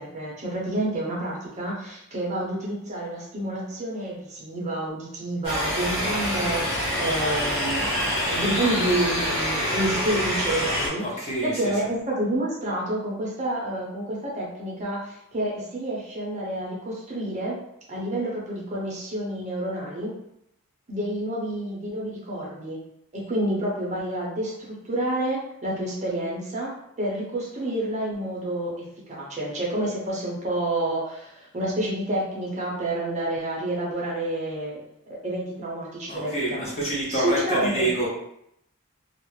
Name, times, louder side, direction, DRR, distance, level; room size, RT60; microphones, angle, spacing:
voice 1, 0.0-17.5 17.9-20.1 20.9-22.8 23.1-28.7 29.1-34.8 35.2-36.6 37.1-37.9, right 1 dB, 30° right, -4 dB, 0.6 m, -29 dB
sound 1, 5.4-10.9, equal, 70° left, 1.1 m, -26 dB
voice 2, 11.0-11.7 36.1-38.1, right 1 dB, 30° left, -5 dB, 0.7 m, -27 dB
2.3 x 2.0 x 3.0 m, 0.76 s
head